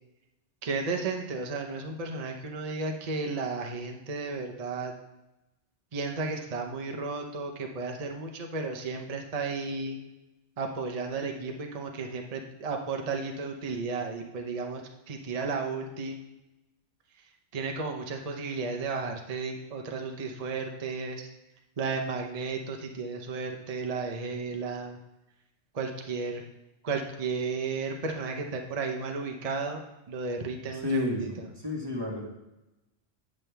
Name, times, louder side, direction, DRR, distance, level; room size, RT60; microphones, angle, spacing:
voice 1, 0.6-4.9 5.9-10.0 10.6-16.2 17.5-21.3 21.8-25.0 25.7-26.4 26.8-29.8 30.1-31.5, right 4 dB, 35° right, 3 dB, 0.7 m, -33 dB
voice 2, 30.8-32.3, left 3 dB, 20° right, -1 dB, 1.4 m, -31 dB
9.0 x 6.3 x 3.4 m, 0.97 s
omnidirectional pair, 1.3 m